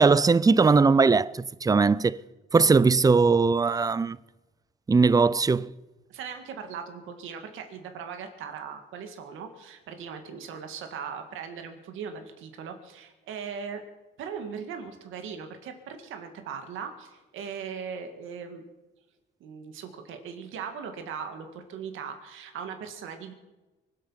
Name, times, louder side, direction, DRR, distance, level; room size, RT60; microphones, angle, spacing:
voice 1, 0.0-2.2 2.5-4.2 4.9-5.7, right 4 dB, 20° right, 0.5 m, -20 dB
voice 2, 6.1-13.8 14.2-18.6 19.4-23.3, right 6 dB, 85° right, 2.0 m, -39 dB
24.5 x 8.6 x 5.7 m
cardioid pair, 90°, 20 cm